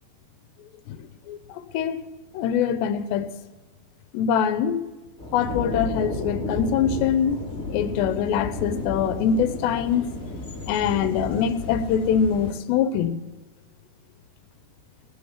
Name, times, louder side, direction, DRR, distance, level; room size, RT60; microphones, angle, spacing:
voice 1, 0.9-2.0 2.3-3.3 4.1-4.8 5.3-7.4 7.7-10.1 10.7-13.2, left 8 dB, 80° left, 2.9 m, -24 dB
sound 1, 5.2-12.5, left 2 dB, 20° left, 4.3 m, -32 dB
19.5 x 8.0 x 7.3 m
omnidirectional pair, 4.9 m